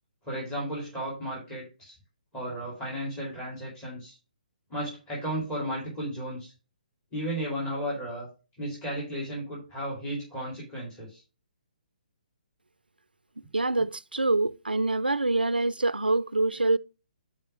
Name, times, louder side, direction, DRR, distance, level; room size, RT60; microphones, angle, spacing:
voice 1, 0.2-1.9 2.3-4.2 4.7-6.5 7.1-8.3 8.6-11.2, equal, 15° left, 2.7 m, -34 dB
voice 2, 13.5-16.8, right 2 dB, 85° right, 0.4 m, -25 dB
5.5 x 4.6 x 5.7 m
figure-of-eight pair, 130°, 5 cm